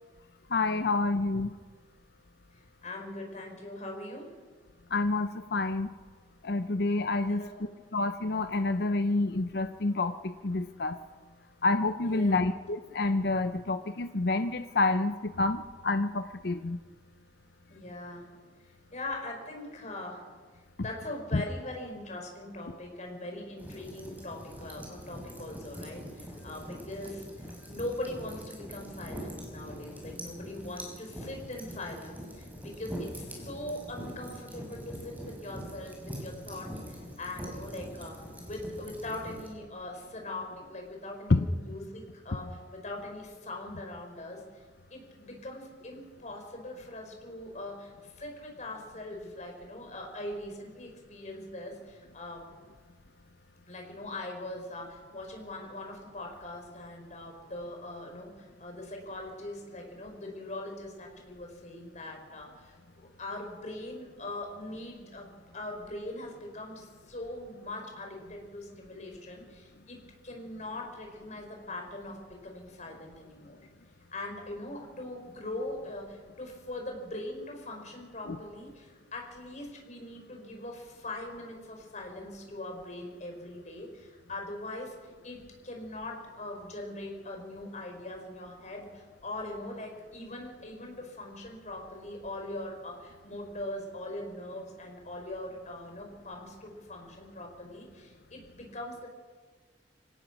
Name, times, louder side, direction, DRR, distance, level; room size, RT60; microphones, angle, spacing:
voice 1, 0.5-1.5 4.9-5.9 6.4-7.4 7.9-11.0 11.6-16.8 21.3-21.4 41.3-41.4 78.3-78.4, left 3 dB, 65° left, 9 dB, 0.7 m, -28 dB
voice 2, 2.5-4.3 7.3-7.6 12.1-12.5 17.7-18.3 18.9-20.2 20.8-44.6 44.9-52.4 53.7-73.6 74.1-85.0 85.2-99.1, left 1 dB, 45° left, 2 dB, 5.2 m, -41 dB
sound 1, 23.6-39.5, equal, 10° right, 5.6 m, -43 dB
25.5 x 17.5 x 6.2 m, 1.4 s
head